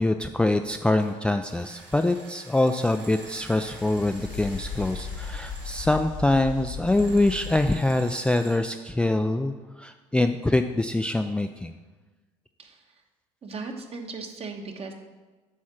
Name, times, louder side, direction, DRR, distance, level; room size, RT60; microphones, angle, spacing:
voice 1, 0.0-11.8, left 2 dB, 5° left, 7 dB, 0.3 m, -24 dB
sound 1, 0.9-1.2 1.5-6.0 6.8-8.6, right 3 dB, 80° right, 1.7 m, -47 dB
sound 2, 3.2-7.8, left 5 dB, 80° left, 1.5 m, -37 dB
voice 2, 13.4-14.9, right 4 dB, 40° right, 4 dB, 1.2 m, -37 dB
8.7 x 3.6 x 6.2 m, 1.3 s
hypercardioid pair, 70°, 16 cm